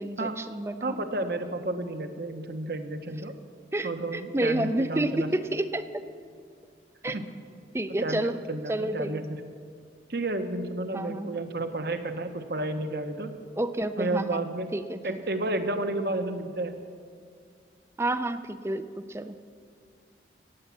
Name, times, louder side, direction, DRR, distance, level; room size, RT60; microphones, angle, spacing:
voice 1, 0.0-1.0 3.7-6.0 7.0-7.2 7.7-8.4 8.7-9.2 10.9-11.4 13.6-14.4 14.7-15.2 18.0-19.4, right 1 dB, 15° right, 11 dB, 0.4 m, -30 dB
voice 2, 0.8-3.3 3.8-5.3 7.0-7.3 8.0-9.4 10.1-13.3 14.0-14.7 15.0-16.7, right 2 dB, 60° right, 8 dB, 0.9 m, -31 dB
15.5 x 9.4 x 7.3 m, 2.2 s
head